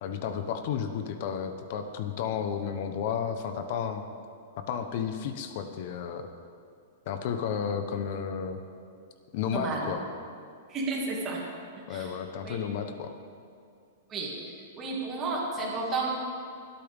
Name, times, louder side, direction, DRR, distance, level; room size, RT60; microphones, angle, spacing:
voice 1, 0.0-4.1 4.6-6.3 7.1-8.6 9.3-10.0 11.9-13.1, left 7 dB, 45° left, 7 dB, 1.0 m, -32 dB
voice 2, 9.5-9.9 10.7-11.4 11.9-12.1 12.4-12.6 14.1-14.3 14.8-16.1, right 3 dB, 20° right, -4 dB, 2.3 m, -31 dB
23.5 x 8.8 x 3.6 m, 2.4 s
supercardioid pair, 165°, 0 cm